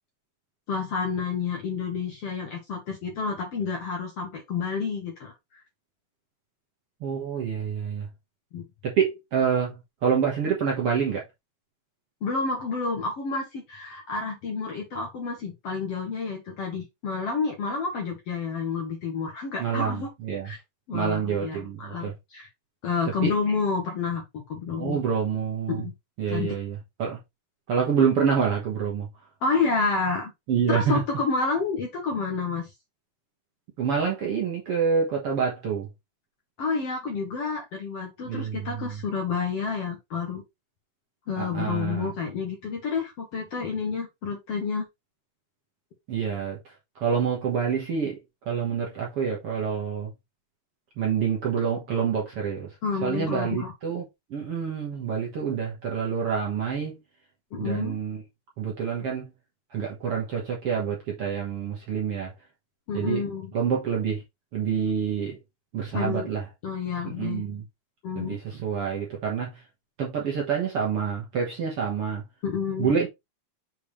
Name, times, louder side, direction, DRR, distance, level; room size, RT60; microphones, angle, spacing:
voice 1, 0.7-5.6 8.5-8.6 12.2-20.1 20.4-20.6 20.9-22.5 22.8-25.0 25.7-25.9 26.3-26.5 29.4-30.3 30.7-32.7 36.6-40.4 41.3-44.9 52.8-53.7 57.5-58.0 62.9-63.5 65.9-66.3 66.6-67.5 68.0-68.4 72.4-72.9, left 5 dB, 55° left, 1.9 m, -29 dB
voice 2, 7.0-8.1 8.8-11.2 19.6-20.5 20.9-22.1 23.2-23.3 24.8-25.9 26.2-27.2 27.7-29.1 30.5-31.0 33.8-35.9 38.3-39.0 41.4-42.1 46.1-46.6 47.0-48.2 48.5-50.1 51.0-52.7 53.0-54.0 54.3-57.0 57.6-58.2 58.6-59.3 59.7-62.3 62.9-63.2 63.5-64.2 64.5-65.4 65.7-66.4 67.2-67.6 68.2-69.5 70.0-72.2 72.8-73.1, right 7 dB, 50° right, 1.9 m, -27 dB
7.1 x 4.5 x 3.2 m
omnidirectional pair, 4.2 m